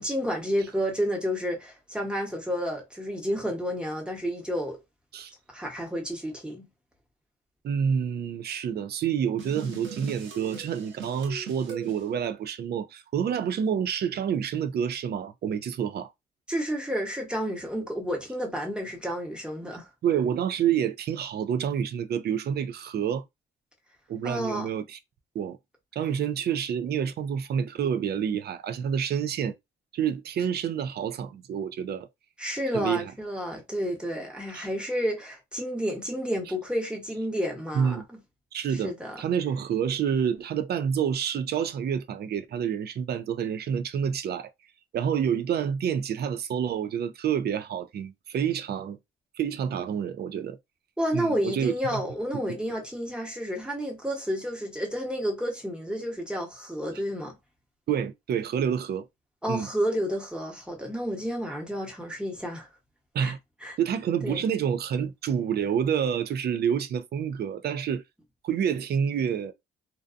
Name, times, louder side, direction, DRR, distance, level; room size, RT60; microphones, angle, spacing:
voice 1, 0.0-4.8 5.5-6.7 16.5-19.9 24.2-24.7 32.4-38.0 38.8-39.2 51.0-57.3 59.4-62.7 63.2-63.3 63.6-63.8 64.2-64.4, equal, 5° right, 1.0 m, -30 dB
voice 2, 7.6-16.1 20.0-23.2 24.1-25.0 25.3-25.6 25.9-29.5 29.9-32.1 32.7-33.1 34.5-34.7 37.7-38.0 38.5-38.9 39.2-44.5 44.9-49.0 49.4-50.6 51.1-52.0 57.9-59.0 59.5-59.7 63.1-63.4 63.8-68.0 68.4-69.5, right 8 dB, 55° right, 0.4 m, -28 dB
sound 1, 9.4-12.0, right 4 dB, 75° right, 0.9 m, -40 dB
2.6 x 2.2 x 2.5 m
cardioid pair, 90°, 20 cm